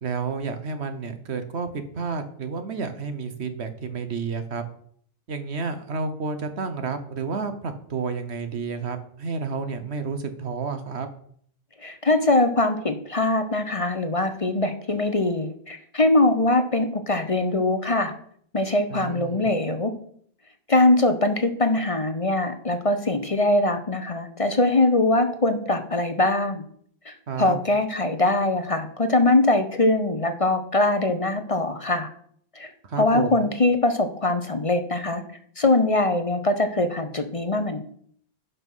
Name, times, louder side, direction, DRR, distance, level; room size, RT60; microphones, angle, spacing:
voice 1, 0.0-4.6 5.3-11.1 18.9-19.5 27.3-27.6 32.8-33.5, right 4 dB, 75° right, 9 dB, 1.4 m, -30 dB
voice 2, 11.8-18.1 18.5-19.9 20.7-26.6 27.1-32.1 32.6-32.7 33.0-35.2 35.6-37.8, left 2 dB, 35° left, 8 dB, 0.9 m, -22 dB
11.0 x 5.8 x 5.6 m, 0.62 s
omnidirectional pair, 1.1 m